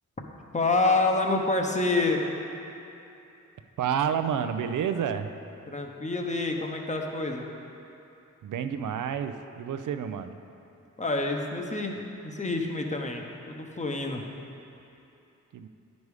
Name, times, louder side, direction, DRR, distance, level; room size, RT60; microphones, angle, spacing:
voice 1, 0.5-2.3 5.7-7.5 11.0-12.0 12.2-14.3, left 2 dB, 25° left, 2 dB, 0.8 m, -27 dB
voice 2, 3.8-5.4 8.4-10.4 15.5-15.7, right 8 dB, 85° right, 9 dB, 0.5 m, -29 dB
9.6 x 5.2 x 4.8 m, 2.8 s
cardioid pair, 85°, 30 cm